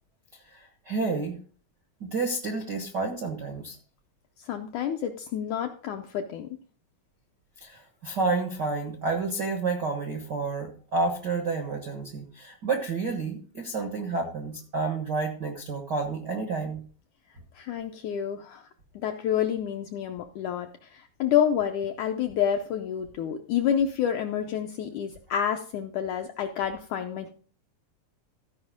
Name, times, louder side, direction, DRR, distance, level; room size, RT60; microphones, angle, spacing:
voice 1, 0.5-1.4 2.0-3.8 7.6-16.8, right 3 dB, 85° right, 4 dB, 0.9 m, -30 dB
voice 2, 4.4-6.5 17.6-18.7 19.0-27.3, left 9 dB, 80° left, 5 dB, 1.7 m, -29 dB
15.0 x 5.2 x 5.0 m, 0.43 s
omnidirectional pair, 4.2 m